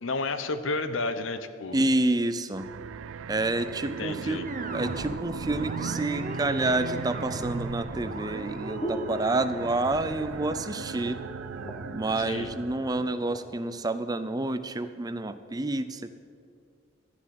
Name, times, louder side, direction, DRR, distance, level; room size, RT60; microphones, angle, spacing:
voice 1, 0.0-1.8 3.8-4.4 12.2-12.5, left 3 dB, 80° left, 11 dB, 0.9 m, -31 dB
voice 2, 1.7-2.7 3.3-4.4 4.7-11.2 11.9-16.1, right 2 dB, 20° right, 11 dB, 0.5 m, -28 dB
sound 1, 2.5-13.2, right 6 dB, 85° right, 0.4 m, -38 dB
sound 2, 4.4-13.7, right 2 dB, 40° right, 1.0 m, -40 dB
sound 3, 6.7-9.8 10.1-10.6 11.0-11.1 11.4-12.1 12.7-13.5 14.1-14.3, equal, 25° left, 1.2 m, -41 dB
12.5 x 7.4 x 9.4 m, 2.3 s
head